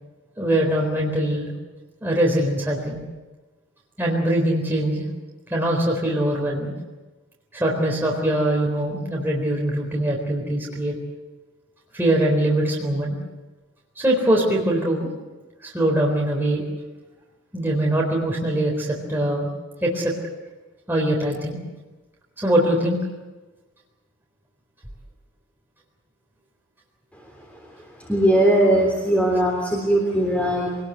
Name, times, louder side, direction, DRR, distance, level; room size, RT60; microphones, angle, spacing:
voice 1, 0.4-1.5 2.0-3.0 4.0-5.0 5.5-6.8 7.5-11.0 11.9-13.2 14.0-15.1 15.6-16.6 17.5-19.5 19.8-20.1 20.9-21.6 22.4-23.0, right 1 dB, 10° right, -2 dB, 4.1 m, -22 dB
voice 2, 28.0-30.8, right 1 dB, 5° left, 0 dB, 3.5 m, -19 dB
25.5 x 20.0 x 8.0 m, 1.2 s
head